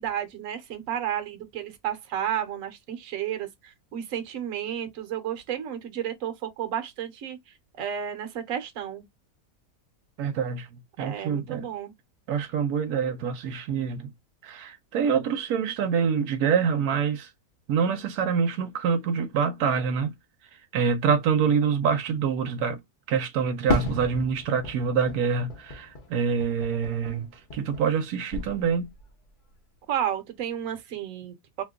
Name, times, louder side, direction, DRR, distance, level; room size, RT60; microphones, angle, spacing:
voice 1, 0.0-7.4 7.7-9.0 11.0-11.9 29.9-31.6, right 10 dB, 65° right, 1.1 m, -32 dB
voice 2, 10.2-11.7 12.3-14.1 14.4-17.3 17.7-20.1 20.7-22.8 23.1-28.9, right 6 dB, 90° right, 1.2 m, -26 dB
Fireworks, 23.7-28.0 28.3-29.1, left 2 dB, 40° left, 0.8 m, -33 dB
2.9 x 2.2 x 3.6 m
omnidirectional pair, 1.6 m